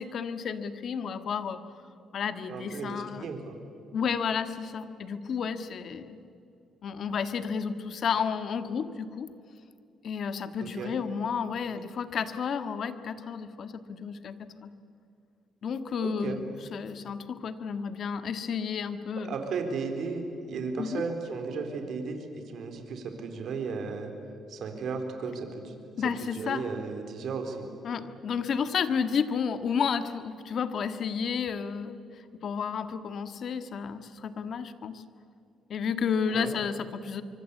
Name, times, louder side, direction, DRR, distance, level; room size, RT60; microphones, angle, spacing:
voice 1, 0.0-1.6 2.1-3.3 3.9-6.2 6.8-9.3 10.0-14.7 15.6-16.4 16.7-19.3 20.8-21.0 26.0-26.6 27.8-32.0 32.4-35.0 35.7-37.2, left 6 dB, 60° left, 11 dB, 1.6 m, -31 dB
voice 2, 2.5-3.6 10.6-10.9 16.0-16.4 19.2-24.1 24.5-25.8 26.2-27.7 36.3-36.5, right 4 dB, 65° right, 5 dB, 4.0 m, -35 dB
25.0 x 24.5 x 8.5 m, 2.6 s
cardioid pair, 90°, 0 cm